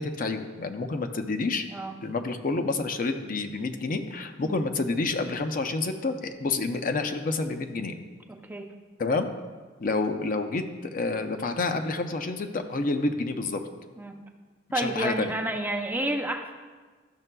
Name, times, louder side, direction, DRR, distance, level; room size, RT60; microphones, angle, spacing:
voice 1, 0.0-1.7 2.0-8.0 9.0-9.3 9.8-13.6 14.7-15.3, left 3 dB, 45° left, 7 dB, 0.5 m, -29 dB
voice 2, 8.3-8.7 14.0-14.2 14.7-16.5, right 1 dB, 10° right, 3 dB, 0.5 m, -30 dB
12.0 x 6.4 x 2.2 m, 1.4 s
head